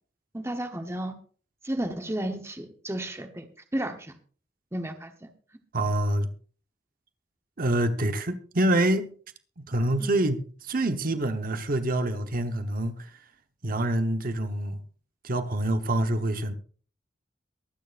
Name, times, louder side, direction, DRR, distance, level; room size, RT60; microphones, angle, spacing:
voice 1, 0.3-1.1 1.6-4.2 4.7-5.3 10.0-10.1, right 1 dB, 15° right, 1.1 m, -33 dB
voice 2, 5.7-6.3 7.6-9.1 9.6-12.9 13.6-14.8 15.2-16.5, right 1 dB, 50° right, 1.1 m, -26 dB
23.0 x 9.2 x 2.6 m
head